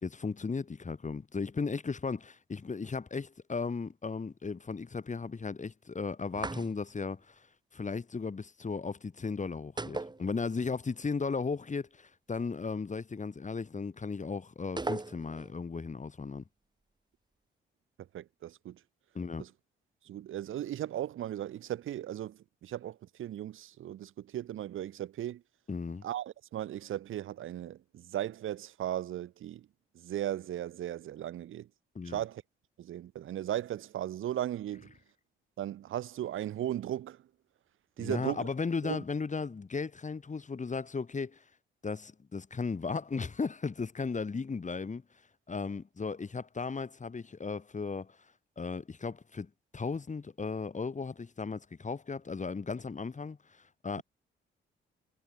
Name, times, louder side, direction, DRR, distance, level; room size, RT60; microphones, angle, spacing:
voice 1, 0.0-7.5 7.7-16.4 19.1-19.4 25.7-26.0 31.9-32.2 38.0-41.4 41.8-45.0 45.5-48.2 48.6-54.0, left 4 dB, 35° left, 4.3 m, -36 dB
sound 1, 6.3-7.1 9.8-10.8 11.1-11.2 14.8-15.6, right 2 dB, 20° right, 3.0 m, -37 dB
voice 2, 18.1-18.8 19.4-19.5 20.0-25.4 26.0-29.7 29.9-31.7 32.0-32.4 32.8-34.9 35.6-37.2 38.0-38.5 38.8-39.0, right 12 dB, 80° right, 4.4 m, -37 dB
supercardioid pair, 65°, 21 cm